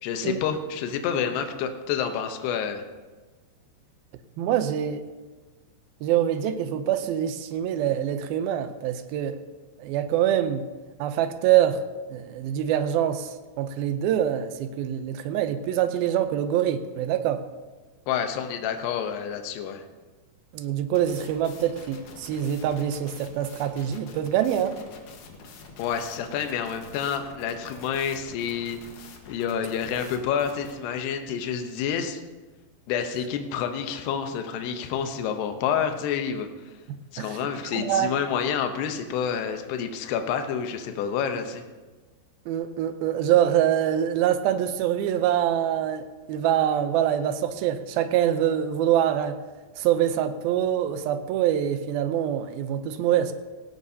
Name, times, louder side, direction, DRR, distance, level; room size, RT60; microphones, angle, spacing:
voice 1, 0.0-2.8 18.1-19.8 25.8-28.8 29.3-32.2 32.9-36.5 37.1-41.6, left 7 dB, 80° left, 6 dB, 3.0 m, -28 dB
voice 2, 4.4-5.0 6.0-9.4 9.8-10.7 11.0-11.8 12.1-17.4 20.5-24.8 37.2-38.1 42.5-49.4 49.8-53.3, right 10 dB, 80° right, 10 dB, 2.3 m, -25 dB
sound 1, 20.9-30.7, left 4 dB, 60° left, 2.5 m, -46 dB
17.5 x 16.5 x 2.8 m, 1.3 s
omnidirectional pair, 4.8 m